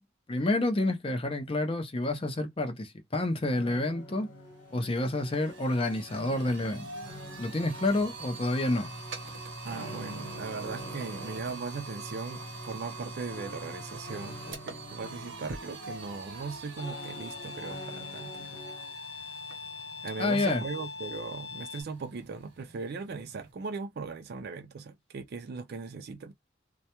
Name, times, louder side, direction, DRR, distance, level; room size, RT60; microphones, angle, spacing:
voice 1, 0.3-4.3 4.7-6.9 7.4-8.9 20.2-20.6, left 2 dB, 30° left, 0.6 m, -29 dB
sound 1, 3.5-18.9, left 2 dB, 85° left, 1.1 m, -47 dB
sound 2, 4.1-4.2 4.5-23.5, right 3 dB, 70° right, 0.8 m, -44 dB
voice 2, 9.6-18.6 20.0-26.3, right 4 dB, 55° right, 0.4 m, -39 dB
Bowed string instrument, 16.8-21.8, left 4 dB, 60° left, 0.9 m, -42 dB
2.2 x 2.1 x 2.9 m
head